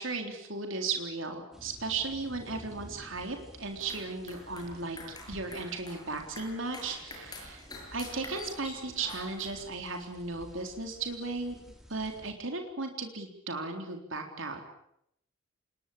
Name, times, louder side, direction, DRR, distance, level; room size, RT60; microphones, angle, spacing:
voice 1, 0.0-5.0 5.3-7.6 7.9-11.6 11.9-14.6, right 3 dB, 65° right, 4 dB, 3.7 m, -36 dB
sound 1, 1.5-12.3, equal, ahead, 3.6 m, -53 dB
sound 2, 3.7-9.7, left 2 dB, 20° left, 7.2 m, -47 dB
26.5 x 21.5 x 8.6 m, 0.76 s
head